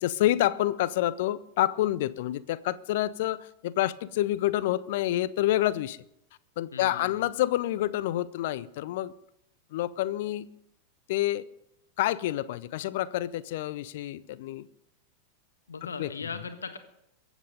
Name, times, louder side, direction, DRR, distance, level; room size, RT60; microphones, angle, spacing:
voice 1, 0.0-6.0 6.6-9.1 9.7-10.5 11.1-11.5 12.0-14.7 16.0-16.1, left 14 dB, 50° left, 0.6 m, -28 dB
voice 2, 6.7-7.3 15.7-16.8, left 5 dB, 70° left, 1.4 m, -38 dB
22.5 x 8.2 x 5.3 m
figure-of-eight pair, 90°, 0 cm